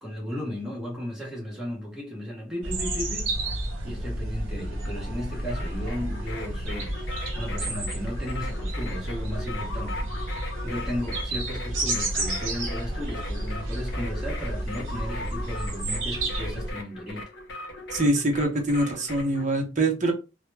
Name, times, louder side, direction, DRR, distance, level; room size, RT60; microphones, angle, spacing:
voice 1, 0.0-3.3 3.8-10.1 10.6-17.2, equal, 5° right, 0.8 m, -35 dB
sound 1, 2.6-16.7, right 1 dB, 70° right, 0.9 m, -31 dB
sound 2, 5.3-19.4, left 2 dB, 60° left, 0.6 m, -39 dB
voice 2, 17.9-20.1, right 1 dB, 40° right, 0.6 m, -24 dB
2.1 x 2.1 x 3.1 m
head